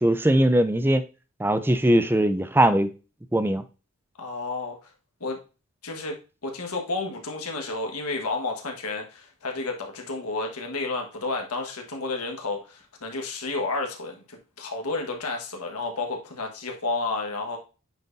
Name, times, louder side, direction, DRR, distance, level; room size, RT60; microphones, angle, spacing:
voice 1, 0.0-1.0 1.4-2.9 3.3-3.6, right 1 dB, 10° right, 0.5 m, -20 dB
voice 2, 4.2-4.8 5.2-5.4 5.8-6.2 6.4-17.6, left 3 dB, 80° left, 1.5 m, -31 dB
9.0 x 4.2 x 2.6 m
head